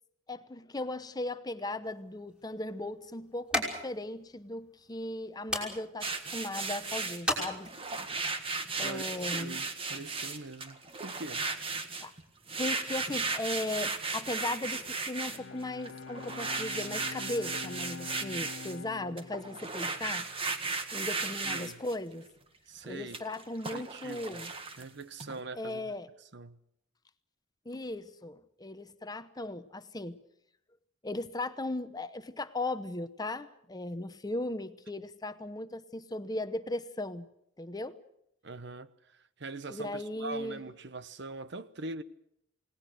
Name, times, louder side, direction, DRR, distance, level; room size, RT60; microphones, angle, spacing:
voice 1, 0.3-7.7 8.8-9.6 12.0-12.1 12.6-20.2 20.9-22.2 22.8-24.5 25.5-26.1 27.6-30.2 31.0-37.3 37.6-38.0 39.7-40.6, left 2 dB, 20° left, 0.8 m, -37 dB
sound 1, 1.8-8.1, left 1 dB, 5° right, 5.8 m, -38 dB
sound 2, 6.0-12.2 12.5-18.8 19.2-22.0 22.8-25.4, right 4 dB, 30° right, 1.8 m, -36 dB
voice 2, 9.3-11.5 21.4-21.8 22.7-23.2 23.7-24.3 24.8-25.9 26.3-26.6 38.4-38.9 39.4-42.0, right 3 dB, 60° right, 1.1 m, -42 dB
Bowed string instrument, 15.2-20.8, left 4 dB, 75° left, 0.9 m, -46 dB
29.0 x 19.0 x 6.5 m
head